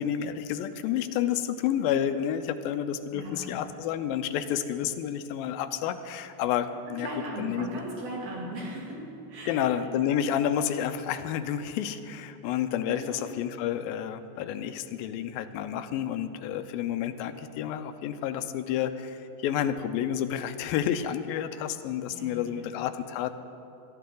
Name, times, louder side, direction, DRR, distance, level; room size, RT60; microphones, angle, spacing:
voice 1, 0.0-7.1 7.4-7.7 9.5-23.3, left 10 dB, 85° left, 10 dB, 2.4 m, -30 dB
sound 1, 2.0-20.2, right 1 dB, 70° right, 6.0 m, -57 dB
voice 2, 3.1-3.5 6.9-9.0 9.3-10.0 12.9-13.3 22.1-22.4, right 1 dB, 90° right, -4 dB, 4.5 m, -37 dB
18.0 x 13.5 x 3.9 m, 2.7 s
omnidirectional pair, 4.2 m